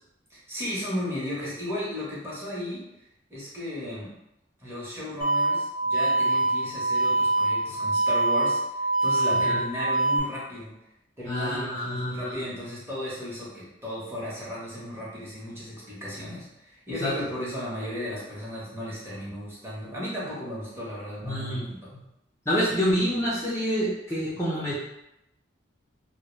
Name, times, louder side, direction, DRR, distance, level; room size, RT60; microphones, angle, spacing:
voice 1, 0.3-2.8 3.3-4.1 4.6-10.7 11.2-21.9, equal, 15° right, -7 dB, 0.8 m, -35 dB
sound 1, 5.2-10.2, right 2 dB, 70° right, 0.6 m, -24 dB
voice 2, 11.3-12.4 17.0-17.1 21.2-22.0 22.5-24.7, equal, 15° left, -9 dB, 0.4 m, -27 dB
2.2 x 2.1 x 3.1 m, 0.88 s
head